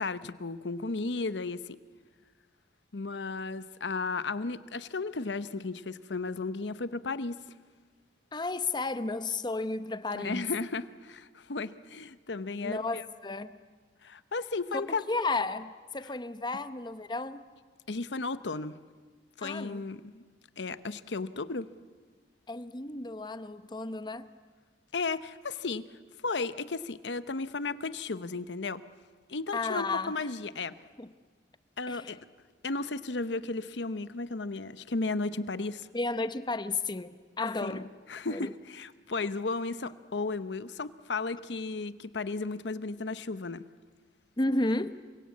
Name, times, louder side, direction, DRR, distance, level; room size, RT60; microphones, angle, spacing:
voice 1, 0.0-1.8 2.9-7.4 10.1-13.0 14.0-15.0 17.9-18.8 19.4-20.3 20.6-21.7 24.9-28.8 29.3-30.7 31.8-32.2 32.6-35.9 37.6-37.8 38.1-43.7, left 3 dB, 85° left, 0.9 m, -34 dB
voice 2, 8.3-10.5 12.6-13.6 14.7-14.8 15.1-17.4 19.4-19.8 22.5-24.3 29.5-30.1 31.0-31.1 31.9-32.1 35.9-37.9 38.3-38.5 44.4-45.0, left 2 dB, 25° left, 0.9 m, -33 dB
28.0 x 24.5 x 8.5 m
head